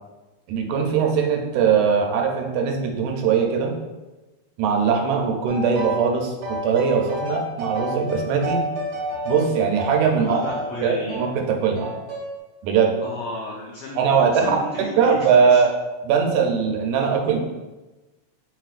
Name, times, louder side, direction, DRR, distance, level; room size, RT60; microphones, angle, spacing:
voice 1, 0.5-3.7 4.6-8.6 9.3-10.4 10.8-11.9 12.6-12.9 14.0-14.5 15.0-15.7 16.0-17.4, right 6 dB, 80° right, 2 dB, 2.0 m, -20 dB
sound 1, 5.5-6.1 6.4-10.7 11.1-11.3 11.8-12.3, equal, 60° right, 1.0 m, -30 dB
voice 2, 10.2-11.2 13.0-15.6, left 2 dB, 85° left, -4 dB, 1.3 m, -33 dB
4.5 x 4.2 x 2.4 m, 1.1 s
omnidirectional pair, 3.4 m